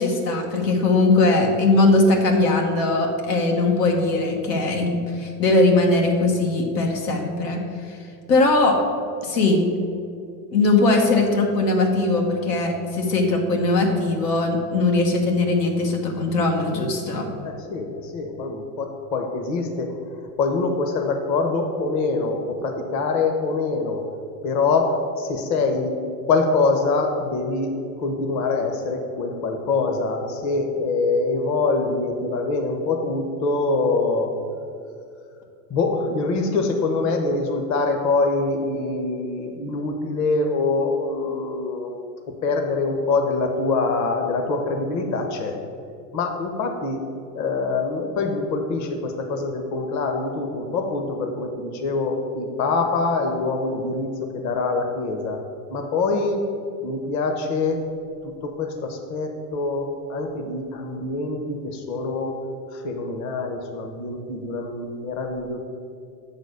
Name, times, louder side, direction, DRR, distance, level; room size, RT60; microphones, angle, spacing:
voice 1, 0.0-7.6 8.3-8.8 9.2-9.6 10.5-17.3, left 2 dB, 85° left, 1 dB, 1.6 m, -20 dB
voice 2, 17.4-24.1 24.4-26.0 26.3-34.3 35.7-45.5 46.1-47.1 47.3-55.4 55.7-56.4 56.8-57.8 58.2-62.3 62.7-65.6, left 3 dB, 40° left, 3 dB, 1.0 m, -24 dB
7.6 x 4.1 x 6.6 m, 2.4 s
supercardioid pair, 115°, 47 cm